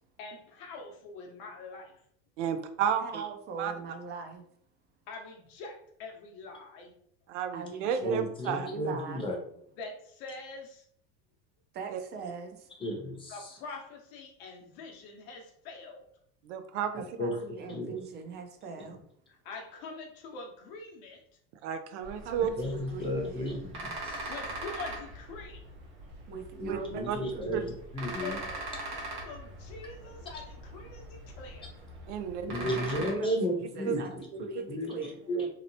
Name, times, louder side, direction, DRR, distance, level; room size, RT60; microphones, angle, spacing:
voice 1, 0.2-2.0 5.1-7.0 9.8-10.9 13.3-16.0 19.3-21.2 24.2-25.6 28.2-31.7, left 3 dB, 65° left, 1 dB, 0.8 m, -44 dB
voice 2, 2.4-3.2 3.6-3.7 7.3-8.7 11.9-12.0 16.5-16.9 21.6-22.5 26.7-26.8 27.1-27.2 27.5-27.6 32.1-32.4 33.8-34.0 34.3-34.4 34.9-35.0 35.4-35.5, right 8 dB, 90° right, 9 dB, 0.5 m, -32 dB
voice 3, 3.0-4.4 7.5-8.2 8.5-9.3 11.7-12.7 16.9-19.0 22.2-23.4 26.3-27.8 32.4-34.1 34.4-35.2, right 4 dB, 30° right, 5 dB, 0.5 m, -41 dB
voice 4, 8.0-9.3 12.8-13.6 17.2-17.4 17.7-18.0 22.6-24.3 26.6-27.7 27.9-28.4 32.5-34.2 34.7-34.9 35.3-35.5, equal, 15° left, 0 dB, 0.7 m, -33 dB
sound 1, 22.0-33.1, right 2 dB, 60° right, 1.0 m, -42 dB
2.8 x 2.0 x 2.6 m, 0.66 s
supercardioid pair, 120°, 34 cm